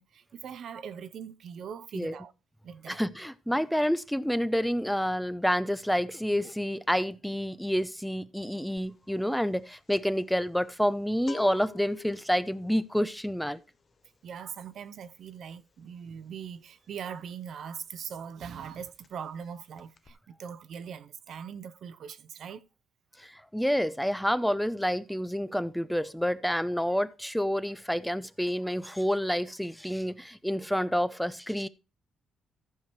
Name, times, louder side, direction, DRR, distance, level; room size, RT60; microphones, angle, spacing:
voice 1, 0.0-2.3 2.6-3.0 14.2-22.6, right 7 dB, 65° right, 0.7 m, -41 dB
voice 2, 2.9-13.6 23.2-31.7, equal, ahead, 0.5 m, -28 dB
sound 1, 8.8-9.0 9.3-17.9 18.1-18.4 18.6-19.5 19.7-20.1, left 7 dB, 40° left, 0.8 m, -49 dB
14.0 x 4.8 x 4.4 m
cardioid pair, 90°, 0 cm